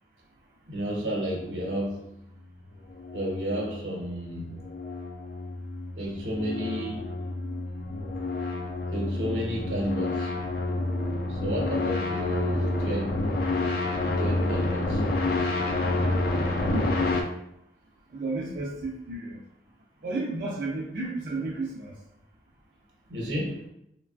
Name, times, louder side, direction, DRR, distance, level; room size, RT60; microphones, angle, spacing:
voice 1, 0.7-2.0 3.1-4.6 6.0-7.1 8.9-10.3 11.3-13.2 14.0-15.0 23.1-23.6, equal, 80° right, -2 dB, 0.8 m, -31 dB
sound 1, 2.7-17.2, left 2 dB, 55° left, 0.4 m, -29 dB
voice 2, 16.6-17.2 18.1-19.4 20.0-22.0, right 2 dB, 50° right, -4 dB, 0.4 m, -33 dB
3.1 x 2.2 x 2.4 m, 0.78 s
head